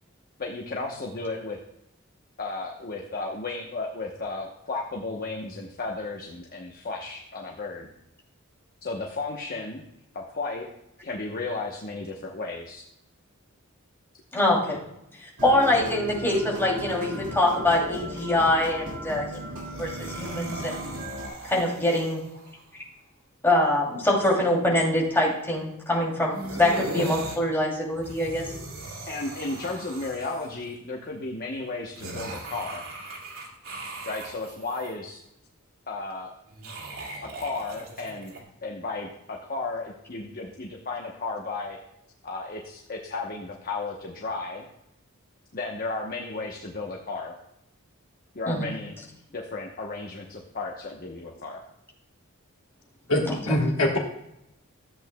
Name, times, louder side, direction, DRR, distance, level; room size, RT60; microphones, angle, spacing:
voice 1, 0.4-1.6 2.4-7.9 8.8-9.8 10.1-10.7 11.0-12.8 16.6-16.7 29.1-32.8 34.1-35.2 35.9-36.3 37.3-38.3 38.6-41.8 42.2-44.7 45.5-47.3 48.3-48.9 49.3-51.6, left 3 dB, 45° left, 0 dB, 1.0 m, -34 dB
voice 2, 14.3-14.8 15.4-20.8 21.4-22.2 23.4-28.5 48.5-48.7 53.3-53.4, left 1 dB, 10° left, -4 dB, 2.8 m, -24 dB
sound 1, 15.4-21.3, equal, 65° right, 2.2 m, -36 dB
sound 2, 19.6-22.6 26.3-27.4 27.9-30.7 32.0-34.9 36.5-38.4, right 2 dB, 85° right, 2.4 m, -39 dB
voice 3, 53.1-54.0, left 1 dB, 80° left, 1 dB, 1.5 m, -24 dB
14.0 x 8.2 x 2.3 m, 0.81 s
head